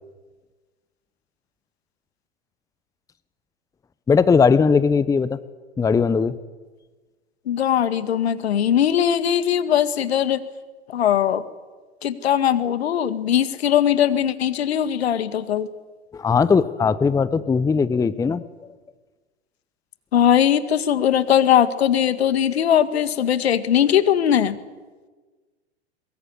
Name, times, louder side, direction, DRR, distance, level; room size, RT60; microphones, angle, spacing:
voice 1, 4.1-5.4 5.8-6.4 16.1-18.4, left 5 dB, 10° left, 16 dB, 0.8 m, -19 dB
voice 2, 7.5-10.4 10.9-11.4 12.0-15.7 20.1-24.6, left 9 dB, 70° left, 12 dB, 1.9 m, -20 dB
22.5 x 21.5 x 9.8 m, 1.3 s
figure-of-eight pair, 95°, 33 cm